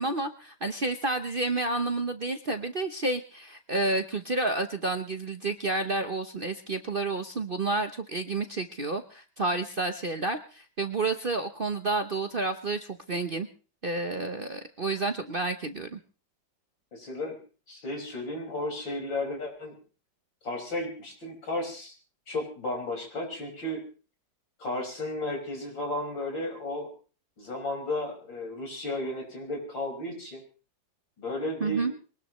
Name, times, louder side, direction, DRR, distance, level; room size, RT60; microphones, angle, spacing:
voice 1, 0.0-13.5 13.8-16.0 31.6-31.9, right 2 dB, 40° right, 7 dB, 0.8 m, -30 dB
voice 2, 16.9-17.4 17.7-19.8 20.4-21.9 22.3-23.8 24.6-26.9 27.4-30.4 31.2-31.9, left 1 dB, 75° left, 1 dB, 6.1 m, -33 dB
23.0 x 19.5 x 3.1 m, 0.37 s
omnidirectional pair, 2.0 m